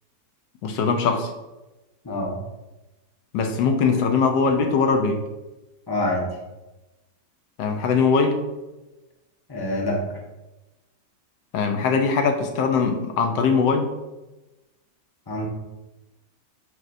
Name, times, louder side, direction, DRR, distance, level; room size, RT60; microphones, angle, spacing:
voice 1, 0.6-1.3 3.3-5.2 7.6-8.4 11.5-13.9, left 5 dB, 90° left, 4 dB, 1.4 m, -21 dB
voice 2, 2.0-2.4 5.9-6.3 9.5-10.2 15.3-15.5, left 1 dB, 20° left, -1 dB, 0.8 m, -26 dB
6.4 x 6.2 x 2.6 m, 1.0 s
omnidirectional pair, 1.9 m